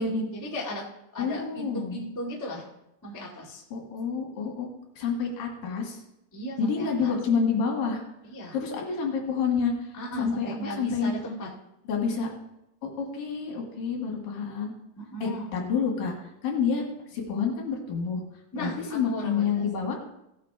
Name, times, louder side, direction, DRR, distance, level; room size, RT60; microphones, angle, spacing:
voice 1, 0.0-2.7 3.0-3.6 6.3-7.2 8.2-8.5 9.9-11.5 15.0-15.5 18.5-19.6, equal, 10° left, -4 dB, 1.1 m, -36 dB
voice 2, 1.2-2.0 3.7-4.7 5.0-6.0 6.6-8.0 8.5-9.9 10.2-11.1 11.9-12.3 12.8-14.7 15.2-16.8 17.1-18.2 18.5-20.0, left 5 dB, 70° left, 0 dB, 3.5 m, -28 dB
17.0 x 7.4 x 3.5 m, 0.85 s
omnidirectional pair, 4.3 m